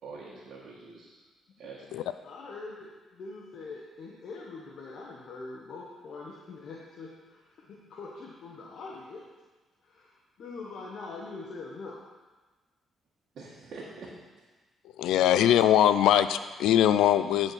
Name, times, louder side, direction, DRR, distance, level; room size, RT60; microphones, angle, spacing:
voice 1, 0.0-1.2 1.6-2.1 13.3-14.1, right 4 dB, 65° right, -7 dB, 1.8 m, -45 dB
voice 2, 2.2-9.3 9.8-12.0, left 3 dB, 60° left, -3 dB, 1.2 m, -43 dB
voice 3, 15.0-17.5, left 11 dB, 85° left, 12 dB, 0.4 m, -22 dB
10.5 x 4.4 x 5.8 m, 1.3 s
cardioid pair, 90°, 0 cm